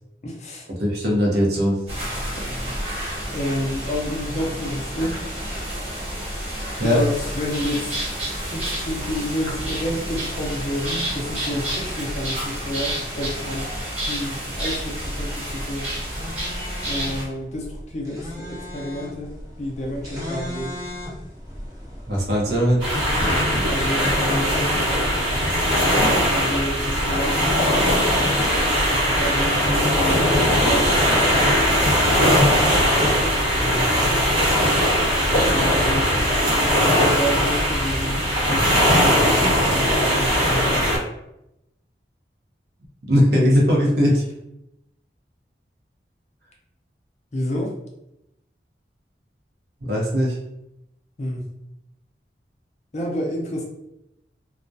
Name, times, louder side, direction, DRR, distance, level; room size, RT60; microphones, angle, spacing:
voice 1, 0.2-0.7 3.3-5.2 6.8-7.9 8.2-13.8 14.1-15.9 16.8-20.8 23.7-25.1 25.9-28.2 28.9-31.0 33.3-34.3 35.5-36.3 36.6-38.2 38.5-41.0 47.3-47.7 51.2-51.5 52.9-53.6, equal, 40° left, 0 dB, 0.4 m, -29 dB
voice 2, 0.8-1.8 5.0-5.1 6.8-7.0 22.1-22.8 43.1-44.2 49.9-50.4, equal, 65° right, -3 dB, 0.7 m, -19 dB
sound 1, 1.9-17.2, equal, 35° right, 1.0 m, -29 dB
sound 2, 15.9-28.8, equal, 20° right, 0.6 m, -36 dB
sound 3, 22.8-41.0, equal, 80° right, 1.1 m, -19 dB
2.3 x 2.1 x 2.6 m, 0.84 s
head